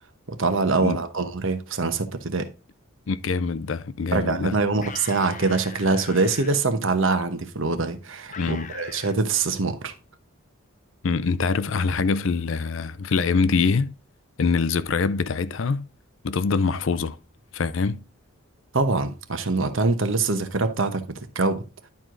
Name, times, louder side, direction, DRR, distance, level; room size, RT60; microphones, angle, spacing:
voice 1, 0.3-2.5 4.1-9.9 18.7-21.6, right 3 dB, 65° right, 1.0 m, -24 dB
voice 2, 3.1-4.6 8.4-8.7 11.0-13.9 14.4-15.8 16.2-17.2 17.5-18.0, left 4 dB, 65° left, 0.5 m, -24 dB
sound 1, 4.7-6.5 8.3-9.2, left 6 dB, 35° left, 0.8 m, -41 dB
11.0 x 4.7 x 3.8 m
head